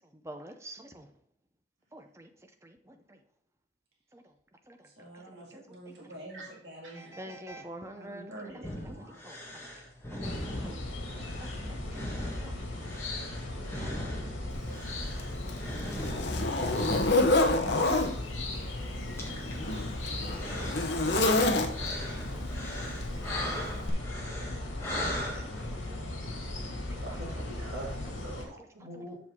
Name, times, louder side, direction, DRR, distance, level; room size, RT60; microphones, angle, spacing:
voice 1, 0.2-1.1 1.9-2.3 2.6-2.7 4.1-4.2 4.7-4.8 5.5-5.6 7.0-8.3 10.1-10.2 10.6-10.7 11.2-12.5 13.8-14.0 16.1-16.2 19.5-19.6 20.3-20.4 21.8-21.9 22.3-22.4 22.9-23.3 23.6-23.7 24.5-24.6 25.0-25.1 25.4-26.0 28.9-29.0, right 1 dB, 15° right, 5 dB, 0.6 m, -47 dB
voice 2, 4.9-7.2 7.9-9.1 13.7-14.9 16.2-17.0, right 1 dB, 55° right, -3 dB, 2.0 m, -48 dB
sound 1, 8.6-25.6, equal, 15° left, 1.4 m, -41 dB
sound 2, 10.2-28.5, left 1 dB, 80° left, 2.1 m, -37 dB
Zipper (clothing), 14.5-14.6 15.2-18.1 19.1-22.1 23.0-23.3 23.9-24.0, left 2 dB, 55° left, 0.9 m, -27 dB
voice 3, 27.0-29.2, right 1 dB, 80° right, -4 dB, 2.0 m, -43 dB
7.2 x 6.2 x 3.6 m, 0.68 s
head